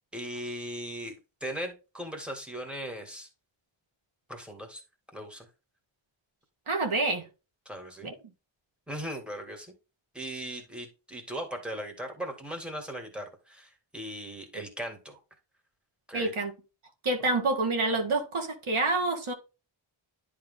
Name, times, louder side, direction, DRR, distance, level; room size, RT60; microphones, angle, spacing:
voice 1, 0.1-3.3 4.3-4.8 5.1-5.5 7.7-8.1 8.9-9.7 10.1-15.2 16.1-16.3, equal, ahead, 2.0 m, -38 dB
voice 2, 6.7-7.3 8.0-8.1 16.1-16.5 17.0-19.3, right 2 dB, 75° right, 1.7 m, -27 dB
10.5 x 3.5 x 3.6 m
wide cardioid pair, 90°, 49 cm